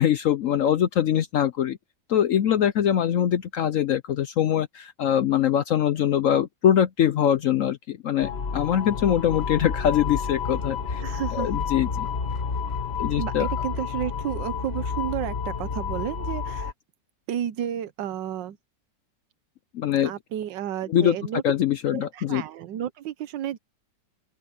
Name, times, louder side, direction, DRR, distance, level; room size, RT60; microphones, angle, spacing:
voice 1, 0.0-1.8 2.1-11.0 11.3-12.1 13.0-13.5 19.7-20.1 20.9-21.2 21.4-22.4, left 10 dB, 65° left, 0.8 m, -23 dB
sound 1, 8.2-16.7, left 6 dB, 40° left, 1.4 m, -30 dB
voice 2, 11.0-11.5 13.2-16.7 17.3-18.6 20.0-21.4 21.9-23.6, right 10 dB, 90° right, 1.5 m, -32 dB
open air
omnidirectional pair, 1.9 m